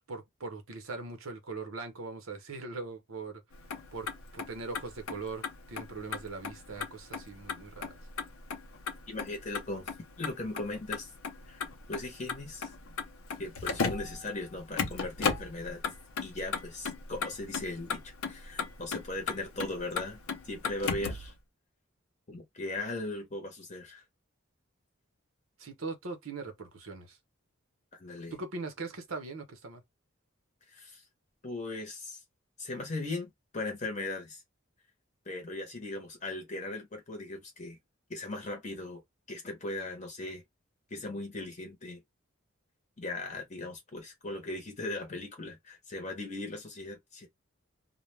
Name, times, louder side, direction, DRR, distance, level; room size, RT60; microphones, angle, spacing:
voice 1, 0.0-3.4 3.9-8.0 25.6-27.2 28.3-29.8, right 3 dB, 85° right, 0.8 m, -41 dB
Motor vehicle (road), 3.5-21.3, left 5 dB, 90° left, 0.6 m, -37 dB
voice 2, 9.1-11.1 11.4-12.7 13.4-15.8 16.2-18.0 18.3-20.2 20.4-21.3 22.3-24.0 27.9-28.4 30.7-31.0 31.4-32.2 32.6-34.4 35.3-37.8 38.1-39.0 39.3-40.4 40.9-42.0 43.0-47.3, left 2 dB, 35° left, 0.8 m, -38 dB
2.2 x 2.1 x 3.1 m
head